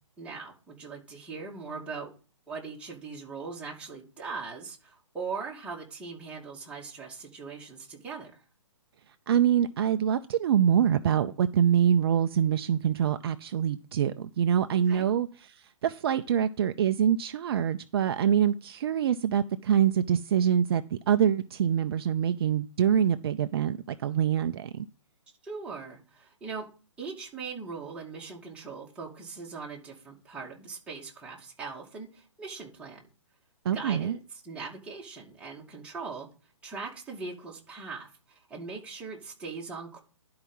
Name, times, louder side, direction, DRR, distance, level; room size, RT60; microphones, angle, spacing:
voice 1, 0.2-2.1 2.5-8.4 14.9-15.1 25.4-26.7 27.0-33.1 33.7-36.3 36.6-40.0, right 4 dB, 5° right, 2.4 m, -40 dB
voice 2, 9.1-24.9 33.6-34.2, right 9 dB, 50° right, 0.6 m, -25 dB
11.5 x 4.8 x 5.5 m
hypercardioid pair, 145°, 16 cm